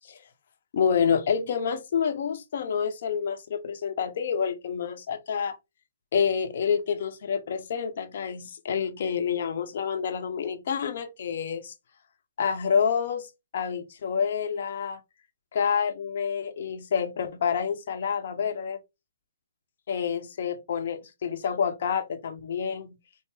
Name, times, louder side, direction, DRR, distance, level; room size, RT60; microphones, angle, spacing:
voice 1, 0.7-5.6 6.1-11.7 12.4-15.0 15.5-18.8 19.9-23.0, left 7 dB, 55° left, 0.8 m, -28 dB
4.5 x 2.1 x 3.5 m
hypercardioid pair, 140°, 0 cm